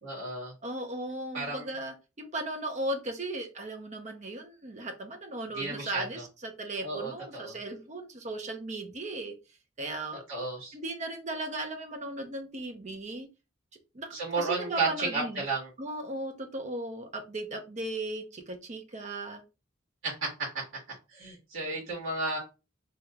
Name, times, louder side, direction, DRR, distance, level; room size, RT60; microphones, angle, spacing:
voice 1, 0.0-0.5 1.3-1.7 5.5-6.2 6.8-7.6 10.3-10.7 14.1-15.7 20.0-20.3 20.5-20.6 21.1-22.4, right 3 dB, 80° right, -5 dB, 1.6 m, -33 dB
voice 2, 0.6-9.3 9.8-10.2 10.7-13.3 13.9-15.5 15.8-19.4, right 2 dB, 40° right, 5 dB, 0.6 m, -37 dB
3.1 x 2.8 x 2.3 m, 0.28 s
head